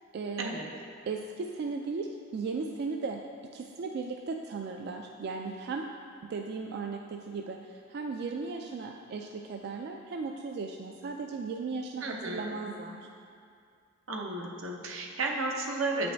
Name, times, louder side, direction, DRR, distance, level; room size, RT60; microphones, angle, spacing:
voice 1, 0.1-0.5 1.1-3.2 3.5-5.9 6.2-13.1, right 4 dB, 55° right, 3 dB, 0.3 m, -36 dB
voice 2, 12.0-12.6 14.1-16.1, right 2 dB, 85° right, 1 dB, 0.8 m, -33 dB
7.8 x 5.3 x 3.4 m, 2.3 s
head